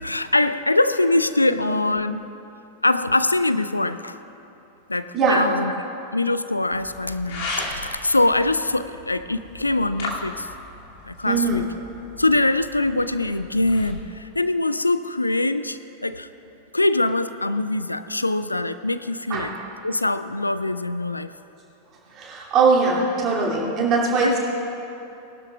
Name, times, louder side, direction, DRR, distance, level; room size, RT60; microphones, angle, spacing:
voice 1, 0.0-2.2 2.8-4.2 4.9-5.7 6.1-10.5 11.1-11.6 12.2-16.3 16.7-19.5 19.8-21.3 24.2-24.4, left 2 dB, 85° left, 13 dB, 0.3 m, -23 dB
voice 2, 1.5-1.9 5.1-5.4 11.2-11.7 19.3-19.7 22.1-24.4, right 4 dB, 30° right, -4 dB, 2.7 m, -22 dB
sound 1, 6.7-14.0, left 2 dB, 50° left, 2.4 m, -37 dB
19.5 x 12.0 x 2.4 m, 2.9 s
figure-of-eight pair, 90°, 0 cm